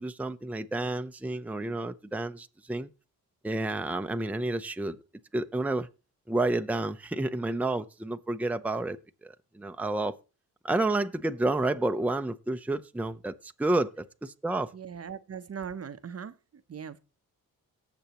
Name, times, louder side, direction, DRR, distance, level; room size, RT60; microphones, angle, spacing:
voice 1, 0.0-2.9 3.4-5.0 5.3-5.9 6.3-10.1 10.6-14.7, right 2 dB, 5° right, 0.6 m, -30 dB
voice 2, 14.7-16.3 16.7-17.0, right 7 dB, 40° right, 0.8 m, -39 dB
18.5 x 6.9 x 3.0 m
cardioid pair, 70°, 37 cm